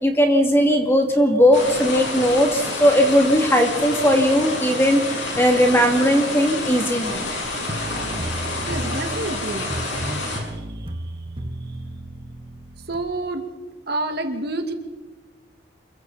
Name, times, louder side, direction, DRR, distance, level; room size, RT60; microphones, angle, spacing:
voice 1, 0.0-7.2, equal, 15° left, 2 dB, 2.7 m, -18 dB
sound 1, 1.5-10.4, left 2 dB, 70° left, 6.4 m, -28 dB
sound 2, 7.7-13.0, right 1 dB, 30° right, 1.5 m, -33 dB
voice 2, 8.7-9.7 12.9-13.5 13.9-14.7, right 2 dB, 55° right, 5 dB, 2.1 m, -28 dB
27.5 x 23.0 x 4.3 m, 1.2 s
head